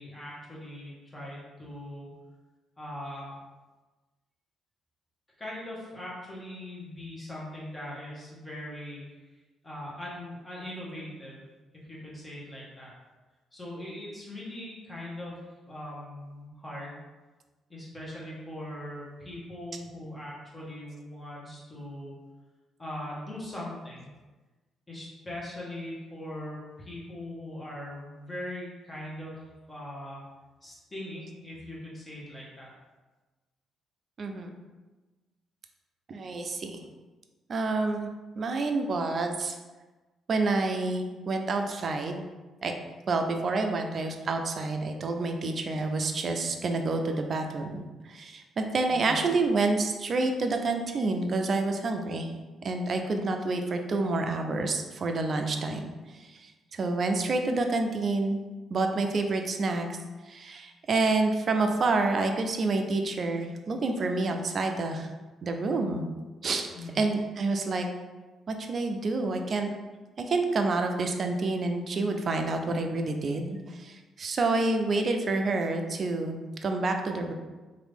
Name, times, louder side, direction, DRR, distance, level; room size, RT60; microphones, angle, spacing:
voice 1, 0.0-2.1 2.8-3.3 5.4-9.0 9.6-11.4 11.8-12.9 13.5-15.4 15.7-17.0 17.7-22.1 22.8-24.1 24.9-29.4 29.7-30.2 30.6-32.7 48.9-49.2 66.7-67.0, left 1 dB, 20° left, -5 dB, 1.2 m, -40 dB
voice 2, 34.2-34.6 36.1-36.8 37.5-38.1 38.4-39.6 40.3-42.2 42.6-42.7 43.1-52.3 52.6-55.9 56.3-58.4 58.7-59.9 60.3-65.1 65.4-66.0 66.4-66.7 66.9-67.9 68.5-69.7 70.2-77.3, right 3 dB, 50° right, 5 dB, 0.4 m, -28 dB
3.0 x 2.6 x 3.3 m, 1.2 s
cardioid pair, 90°, 0 cm